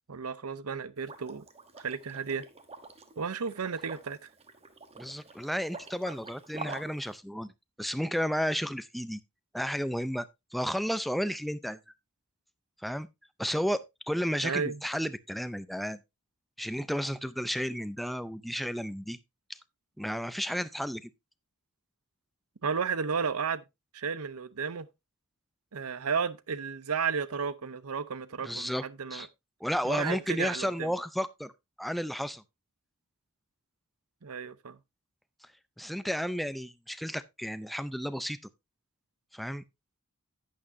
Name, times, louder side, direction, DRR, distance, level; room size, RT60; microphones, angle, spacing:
voice 1, 0.1-1.5 1.8-2.5 3.2-4.2 14.4-14.8 22.6-23.6 23.9-24.9 25.7-29.3 29.8-30.9 34.2-34.8, right 6 dB, 80° right, 0.7 m, -33 dB
Liquid, 1.0-7.1, right 3 dB, 30° right, 1.1 m, -46 dB
voice 2, 5.0-7.5 7.8-9.2 9.5-10.3 10.5-11.8 12.8-13.1 13.4-16.0 16.6-19.2 20.0-21.1 28.4-28.8 29.1-29.3 29.6-31.5 31.8-32.4 35.8-38.4 39.3-39.6, equal, ahead, 0.4 m, -32 dB
11.0 x 8.7 x 2.6 m
head